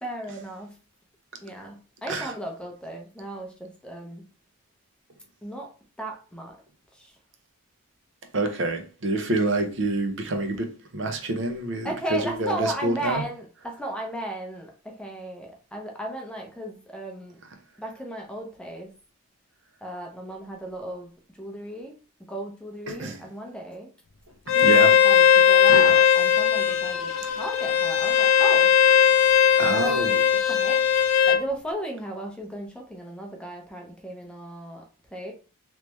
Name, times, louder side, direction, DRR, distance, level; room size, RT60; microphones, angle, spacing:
voice 1, 0.0-0.8 1.4-4.2 5.4-5.7 6.0-6.6 6.9-7.1 11.8-17.4 17.8-18.9 19.8-21.1 21.4-21.9 22.3-23.9 24.5-28.7 29.2-29.3 29.7-30.2 30.5-30.8 31.3-34.9 35.1-35.3, right 1 dB, 5° left, 0.6 m, -35 dB
voice 2, 8.3-13.2 22.9-23.2 24.6-24.9 25.7-25.9 29.6-30.2, right 2 dB, 55° right, 0.6 m, -27 dB
Bowed string instrument, 24.5-31.4, left 8 dB, 70° left, 0.5 m, -19 dB
3.2 x 3.0 x 3.1 m
head